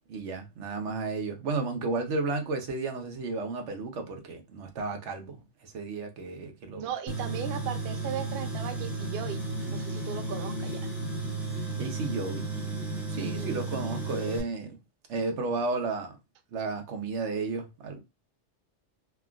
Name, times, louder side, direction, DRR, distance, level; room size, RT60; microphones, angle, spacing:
voice 1, 0.1-6.9 9.7-9.8 11.8-12.5 13.1-14.8 15.1-16.2 16.5-18.0, right 3 dB, 85° right, 1.1 m, -33 dB
voice 2, 6.8-9.4 9.7-10.9 13.2-13.6, right 8 dB, 65° right, 0.7 m, -37 dB
Tools, 7.1-14.4, right 2 dB, ahead, 0.7 m, -33 dB
3.3 x 2.3 x 2.3 m
omnidirectional pair, 1.2 m